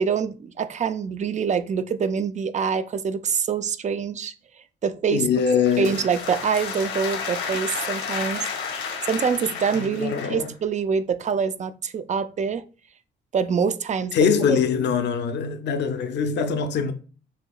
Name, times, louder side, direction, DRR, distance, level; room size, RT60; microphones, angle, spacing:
voice 1, 0.0-4.3 4.8-5.2 5.8-8.5 8.8-12.6 13.3-14.1, right 6 dB, 35° right, 0.4 m, -25 dB
voice 2, 5.1-6.0 9.7-10.5 14.1-16.9, left 6 dB, 60° left, 0.6 m, -23 dB
sound 1, 5.4-10.5, left 6 dB, 85° left, 1.4 m, -32 dB
6.6 x 2.8 x 2.3 m
cardioid pair, 90°, 20 cm